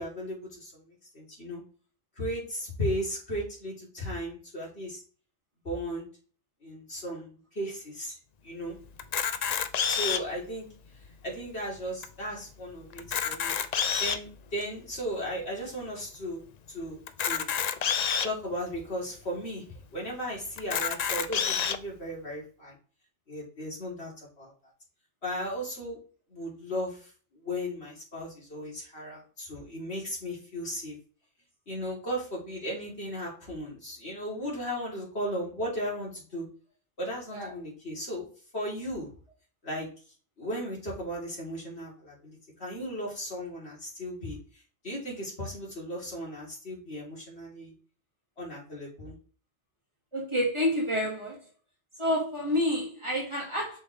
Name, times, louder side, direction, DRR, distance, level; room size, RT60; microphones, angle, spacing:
voice 1, 0.0-1.6 2.2-5.0 5.6-6.1 6.6-8.2 8.4-8.8 9.9-10.7 11.2-17.5 18.2-19.6 19.9-22.8 23.3-24.1 24.4-24.5 25.2-26.0 26.3-31.0 31.7-36.5 37.0-38.3 38.5-39.1 39.6-39.9 40.4-44.4 44.8-47.7 48.4-49.2, equal, 75° left, 3.5 m, -36 dB
Camera, 9.0-10.4 11.0-11.1 11.4-11.5 12.0-12.1 12.9-14.3 14.9-15.0 17.1-18.3 19.0-19.1 19.4-19.5 20.6-21.8, left 7 dB, 50° left, 0.5 m, -28 dB
voice 2, 50.1-51.4 52.0-53.8, left 1 dB, 25° right, 2.5 m, -28 dB
6.9 x 6.2 x 3.3 m
omnidirectional pair, 1.1 m